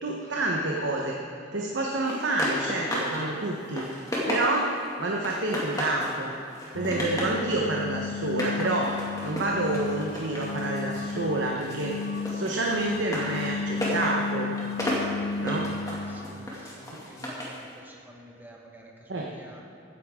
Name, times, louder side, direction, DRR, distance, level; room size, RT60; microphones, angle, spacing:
voice 1, 0.0-1.2 1.5-3.8 4.3-4.7 5.0-6.3 6.7-8.9 9.2-12.0 12.3-14.5 15.4-15.7 16.9-17.0 19.1-19.3, right 2 dB, 65° right, -1 dB, 1.1 m, -28 dB
sound 1, 2.1-3.2 3.6-4.8 5.2-6.2 6.5-7.4 8.2-11.2 11.6-17.6, left 1 dB, 20° left, 2.1 m, -33 dB
sound 2, 6.7-16.5, left 4 dB, 55° left, 0.5 m, -34 dB
voice 2, 16.1-19.6, equal, 10° right, -1 dB, 1.4 m, -49 dB
16.0 x 10.0 x 3.7 m, 2.6 s
head